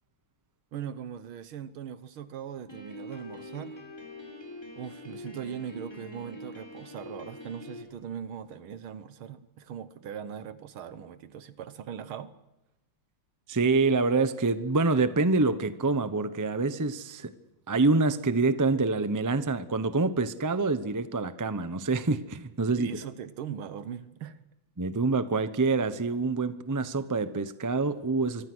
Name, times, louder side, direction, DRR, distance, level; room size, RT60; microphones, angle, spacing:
voice 1, 0.7-3.8 4.7-12.3 22.8-24.4, right 8 dB, 80° right, 13 dB, 2.0 m, -40 dB
Piano, 2.7-7.8, left 1 dB, 10° left, 3.9 m, -44 dB
voice 2, 13.5-17.3 17.7-22.9 24.8-28.5, right 3 dB, 30° right, 11 dB, 0.3 m, -26 dB
24.5 x 24.5 x 6.3 m, 1.0 s
omnidirectional pair, 2.3 m